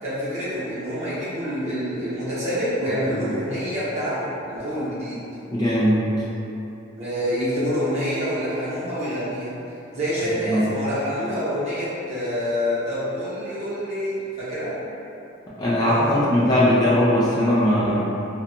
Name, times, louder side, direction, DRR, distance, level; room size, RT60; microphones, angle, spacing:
voice 1, 0.0-5.2 7.0-9.5 9.9-14.8 15.8-16.4, equal, 35° right, -11 dB, 0.8 m, -27 dB
voice 2, 5.5-6.0 10.4-10.7 15.6-18.1, equal, 20° left, -9 dB, 0.3 m, -19 dB
2.7 x 2.2 x 2.5 m, 2.9 s
head